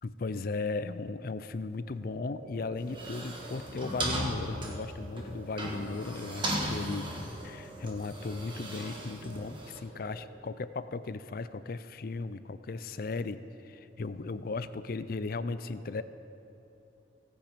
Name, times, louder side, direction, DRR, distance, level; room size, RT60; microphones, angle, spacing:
voice 1, 0.0-7.1 7.4-16.0, left 3 dB, 50° left, 13 dB, 0.4 m, -36 dB
sound 1, 2.0-10.4, right 2 dB, 45° right, 2.9 m, -50 dB
sound 2, 2.8-9.8, right 1 dB, 25° right, 1.5 m, -37 dB
17.5 x 8.6 x 5.1 m, 2.9 s
head